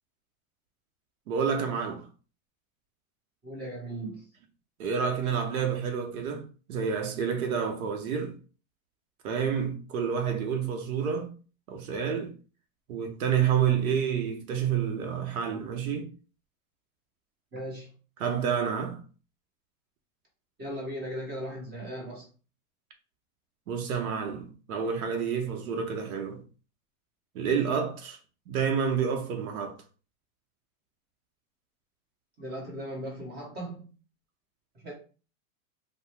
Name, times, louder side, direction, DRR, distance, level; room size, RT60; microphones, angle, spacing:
voice 1, 1.3-2.1 4.8-6.4 6.7-8.4 9.2-11.3 11.7-12.3 12.9-16.1 18.2-19.0 23.7-26.4 27.3-28.2 28.5-29.8, right 7 dB, 75° right, 0.7 m, -29 dB
voice 2, 3.4-4.3 17.5-17.9 20.6-22.2 32.4-33.9 34.8-34.9, right 1 dB, 25° right, 1.1 m, -37 dB
2.7 x 2.1 x 3.2 m
hypercardioid pair, 125°, 43 cm